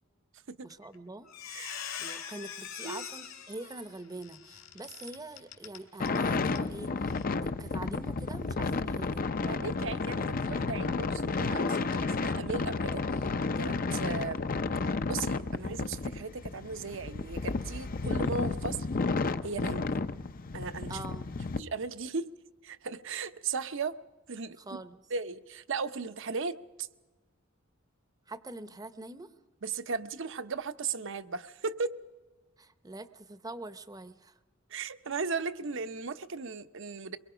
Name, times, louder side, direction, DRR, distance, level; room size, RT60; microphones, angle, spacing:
voice 1, 0.6-1.3 1.6-9.3 18.0-18.3 20.9-21.3 24.6-25.0 28.3-29.3 32.6-34.3, right 2 dB, 20° right, 12 dB, 0.8 m, -44 dB
Squeak, 0.7-1.0 1.3-6.2 6.5-6.7 7.1-7.2, left 8 dB, 75° left, 2.6 m, -43 dB
voice 2, 1.5-1.8 2.8-3.0 9.5-14.4 15.1-18.8 19.4-19.9 20.5-21.0 21.6-22.3 22.6-24.0 24.3-24.6 25.1-26.9 29.6-31.9 34.7-37.2, right 4 dB, 65° right, 10 dB, 0.8 m, -36 dB
sound 1, 6.0-21.6, left 3 dB, 45° left, 0.6 m, -32 dB
23.0 x 22.5 x 5.0 m, 1.2 s
head